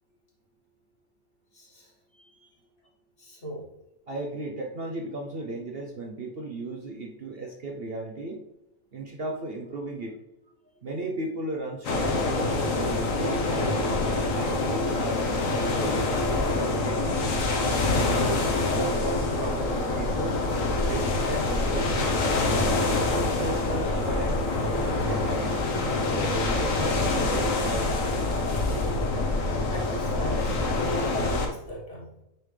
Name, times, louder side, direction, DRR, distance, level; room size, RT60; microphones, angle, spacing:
voice 1, 1.5-1.9 3.2-3.7 29.7-30.6 31.1-32.2, left 1 dB, 45° left, -4 dB, 2.0 m, -38 dB
voice 2, 2.2-2.5 4.1-8.4 8.9-10.1 10.8-13.8 14.3-17.7 18.5-20.4 20.8-22.7 23.3-25.6 26.2-28.1, right 2 dB, 50° right, 0 dB, 0.9 m, -36 dB
sound 1, 11.8-31.5, left 2 dB, 65° left, 1.3 m, -26 dB
9.0 x 3.8 x 3.2 m, 0.89 s
omnidirectional pair, 1.5 m